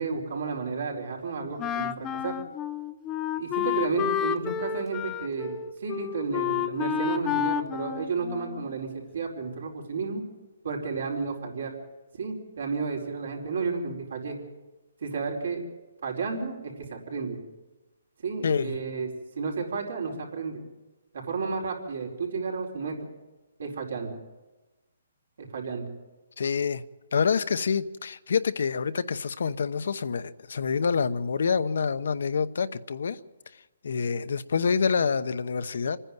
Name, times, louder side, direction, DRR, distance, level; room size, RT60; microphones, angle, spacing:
voice 1, 0.0-2.4 3.4-10.2 10.6-11.7 12.2-14.4 15.0-15.6 16.0-17.4 18.2-19.1 19.3-20.6 21.1-23.0 23.6-24.1 25.4-25.8, right 4 dB, 70° right, 1 dB, 4.6 m, -32 dB
Wind instrument woodwind instrument, 1.6-8.8, left 10 dB, 15° left, 0.6 m, -30 dB
voice 2, 18.4-18.8 26.4-26.8 27.1-33.2 33.5-36.0, left 5 dB, 70° left, 13 dB, 0.9 m, -27 dB
27.0 x 10.0 x 9.4 m, 1.1 s
hypercardioid pair, 160°, 0 cm